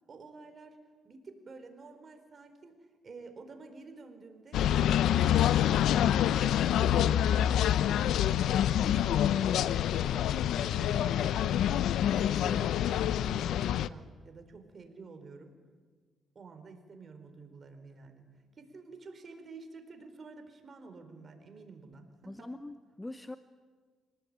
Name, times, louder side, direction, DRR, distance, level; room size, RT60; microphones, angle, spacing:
voice 1, 0.1-0.8 1.0-9.5 10.0-11.8 12.1-15.5 16.3-22.5, right 3 dB, 40° right, 6 dB, 4.5 m, -50 dB
sound 1, 4.5-13.9, left 10 dB, 80° left, 0.7 m, -26 dB
voice 2, 22.3-23.4, left 2 dB, 15° left, 11 dB, 0.9 m, -42 dB
26.5 x 19.0 x 8.9 m, 1.5 s
cardioid pair, 90°, 0 cm